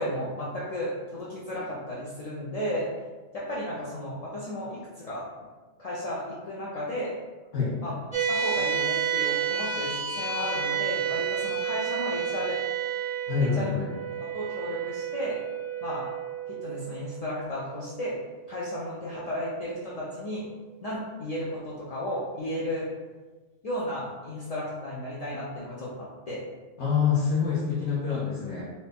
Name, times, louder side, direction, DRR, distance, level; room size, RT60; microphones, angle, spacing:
voice 1, 0.0-2.8 3.3-5.2 5.8-7.1 7.8-7.9 8.3-12.6 13.4-13.7 14.3-15.4 15.8-16.0 16.5-18.2 18.5-20.4 20.8-22.9 23.6-26.4, left 1 dB, 50° left, -7 dB, 0.4 m, -34 dB
sound 1, 8.1-20.8, right 7 dB, 5° left, 0.6 m, -32 dB
voice 2, 13.3-13.9 26.8-28.6, left 6 dB, 80° left, -8 dB, 1.1 m, -26 dB
2.8 x 2.6 x 3.4 m, 1.3 s
omnidirectional pair, 1.2 m